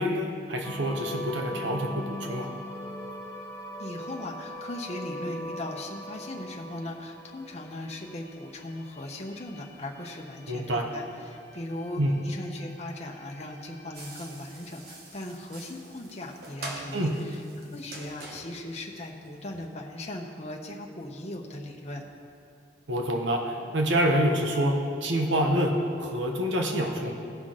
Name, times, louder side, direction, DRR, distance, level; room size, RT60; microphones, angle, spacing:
voice 1, 0.0-2.5 10.5-10.9 12.0-12.1 16.9-17.1 22.9-24.7 25.0-27.1, equal, 80° right, 2 dB, 1.0 m, -27 dB
sound 1, 0.6-15.1, equal, 15° left, 1.3 m, -42 dB
voice 2, 3.8-22.0, left 1 dB, 35° left, 0 dB, 0.9 m, -38 dB
sound 2, 13.9-19.7, right 2 dB, 55° right, 1.3 m, -44 dB
17.0 x 5.8 x 3.8 m, 2.4 s
head